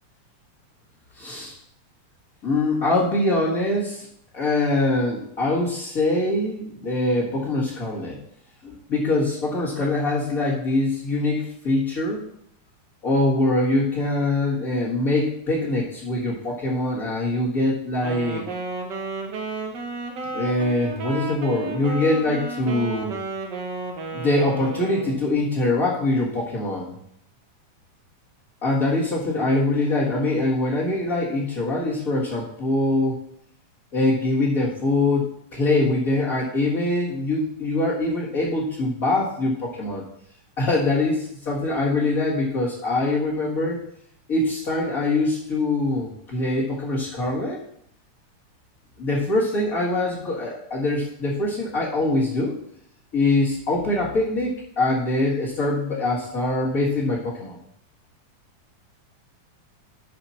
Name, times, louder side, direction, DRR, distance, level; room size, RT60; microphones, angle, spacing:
voice 1, 1.1-1.6 2.4-4.1 4.3-8.2 8.6-12.2 13.0-18.4 20.3-23.1 24.1-26.9 28.6-33.2 33.9-40.0 40.6-43.8 44.3-47.6 49.0-52.6 53.1-57.6, left 2 dB, 35° left, -7 dB, 1.8 m, -23 dB
Wind instrument woodwind instrument, 18.0-25.2, right 3 dB, 75° right, 1.0 m, -32 dB
12.0 x 5.0 x 4.3 m, 0.70 s
omnidirectional pair, 3.6 m